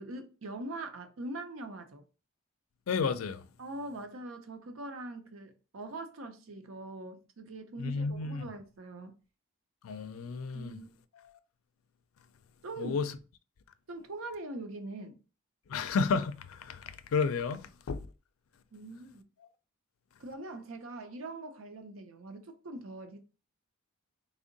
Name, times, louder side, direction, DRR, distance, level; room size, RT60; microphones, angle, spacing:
voice 1, 0.0-2.0 3.6-9.2 10.5-10.9 12.6-13.0 13.9-15.2 18.7-19.2 20.2-23.2, right 2 dB, 70° right, 0.6 m, -42 dB
voice 2, 2.9-3.4 7.8-8.5 9.8-10.8 11.1-11.4 12.8-13.1 15.7-18.0, left 5 dB, 80° left, 0.4 m, -32 dB
3.5 x 2.1 x 3.8 m
head